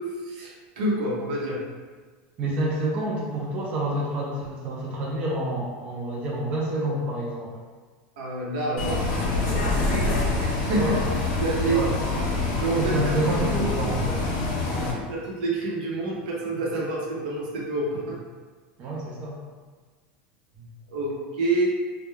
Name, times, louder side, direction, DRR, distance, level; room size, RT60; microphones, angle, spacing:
voice 1, 0.0-1.6 8.2-9.0 9.3-10.9 11.4-11.8 12.5-12.9 15.1-18.2 20.9-21.7, right 2 dB, 80° right, -4 dB, 0.7 m, -28 dB
voice 2, 2.4-7.6 10.7-11.0 11.6-12.1 12.8-14.2 14.7-14.9 18.8-19.4, right 1 dB, 25° right, -4 dB, 0.3 m, -28 dB
Bus, 8.8-14.9, left 3 dB, 55° left, 0.6 m, -26 dB
2.2 x 2.1 x 3.1 m, 1.5 s
supercardioid pair, 180°, 5 cm